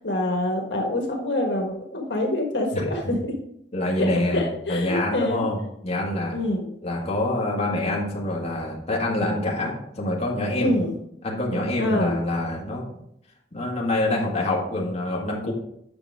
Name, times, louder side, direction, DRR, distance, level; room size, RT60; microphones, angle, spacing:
voice 1, 0.0-3.3 4.0-5.4 6.3-6.7 10.5-10.9 11.8-12.2, left 1 dB, 80° left, 1 dB, 1.6 m, -26 dB
voice 2, 3.7-5.6 5.8-6.3 6.8-10.7 11.2-12.8 13.5-15.5, left 1 dB, 35° left, -3 dB, 1.8 m, -26 dB
8.8 x 6.0 x 3.5 m, 0.75 s
head